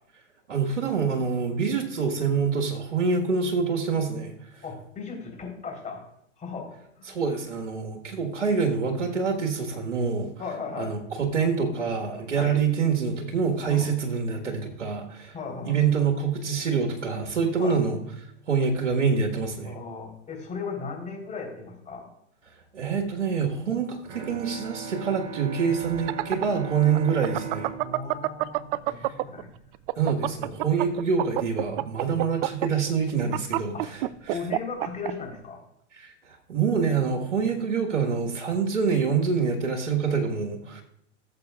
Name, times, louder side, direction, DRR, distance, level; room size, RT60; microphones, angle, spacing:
voice 1, 0.5-4.3 7.1-10.3 10.7-15.3 15.6-18.0 18.5-19.7 22.7-27.7 29.9-34.4 36.0-40.8, right 5 dB, 90° right, 2 dB, 1.6 m, -26 dB
voice 2, 4.6-6.0 6.4-7.2 10.4-10.9 12.4-12.6 13.7-13.9 15.3-15.8 17.6-17.8 19.6-22.1 27.8-29.5 30.0-30.1 30.4-30.5 32.1-32.2 33.7-35.6, left 4 dB, 20° left, 0 dB, 3.6 m, -37 dB
Bowed string instrument, 24.0-29.7, right 5 dB, 65° right, 2.6 m, -39 dB
sound 1, 25.8-29.4 29.7-35.1, right 18 dB, 50° right, 0.5 m, -27 dB
17.5 x 7.7 x 2.4 m, 0.76 s
hypercardioid pair, 110°, 36 cm